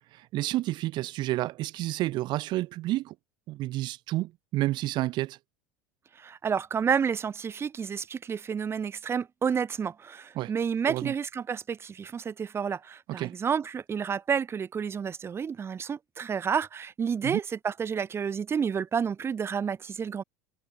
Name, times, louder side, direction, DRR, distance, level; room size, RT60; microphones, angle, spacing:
voice 1, 0.1-3.1 3.5-5.4 10.4-10.5 10.9-11.1 13.2-13.3 17.2-17.4, right 17 dB, 50° right, 0.8 m, -30 dB
voice 2, 6.1-20.2, right 7 dB, 25° right, 1.3 m, -30 dB
supercardioid pair, 115°, 10 cm